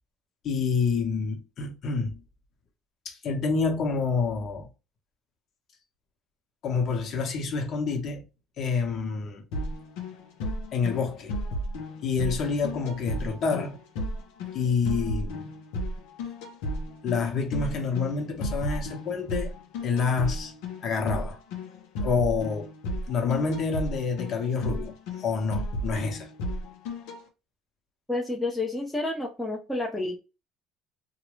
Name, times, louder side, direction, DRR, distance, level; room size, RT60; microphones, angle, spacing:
voice 1, 0.4-2.2 3.0-4.7 6.6-8.2 8.6-9.4 10.7-11.3 12.0-13.8 14.5-15.5 17.0-19.5 19.8-20.5 20.8-21.4 22.0-22.7 23.1-26.3, left 5 dB, 50° left, 1.2 m, -28 dB
sound 1, 9.5-27.2, left 1 dB, 80° left, 0.8 m, -34 dB
voice 2, 28.1-30.2, left 2 dB, 5° left, 0.8 m, -30 dB
2.9 x 2.4 x 3.1 m
cardioid pair, 115°, 0 cm